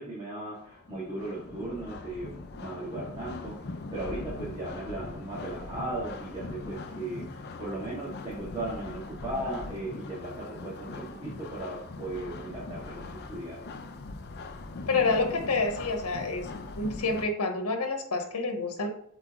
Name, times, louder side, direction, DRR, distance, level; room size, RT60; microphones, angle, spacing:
voice 1, 0.0-13.6, right 1 dB, 20° right, -8 dB, 2.0 m, -37 dB
sound 1, 0.5-17.2, left 3 dB, 50° left, 0.6 m, -41 dB
voice 2, 14.9-16.5 16.8-18.9, left 3 dB, 90° left, 5 dB, 1.1 m, -28 dB
7.6 x 4.5 x 3.0 m, 0.66 s
head